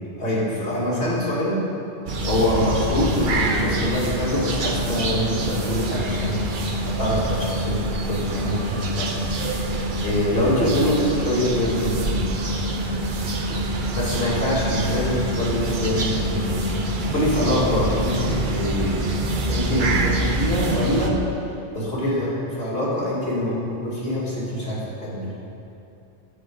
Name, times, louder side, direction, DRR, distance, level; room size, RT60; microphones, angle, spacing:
voice 1, 0.2-1.6 2.3-6.5 6.9-9.2 10.0-12.3 13.5-13.6 13.9-16.7 17.0-19.0 19.5-21.2 21.7-25.3, left 1 dB, 60° left, -7 dB, 2.9 m, -24 dB
sound 1, 2.1-21.1, right 1 dB, 50° right, 0.9 m, -25 dB
9.9 x 4.8 x 7.7 m, 2.7 s
omnidirectional pair, 1.2 m